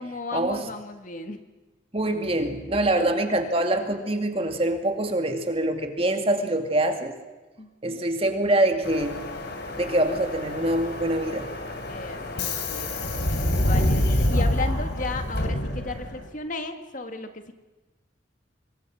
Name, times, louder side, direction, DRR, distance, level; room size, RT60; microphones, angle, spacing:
voice 1, 0.0-1.4 2.7-3.1 7.6-8.0 11.8-13.1 13.6-17.5, left 3 dB, 40° left, 7 dB, 1.8 m, -35 dB
voice 2, 1.9-7.2 7.8-9.2 9.7-11.5, right 1 dB, 30° right, 5 dB, 2.2 m, -24 dB
Subway metro underground, 8.8-16.3, left 1 dB, 55° left, 3.4 m, -27 dB
27.0 x 22.5 x 6.2 m, 1.2 s
head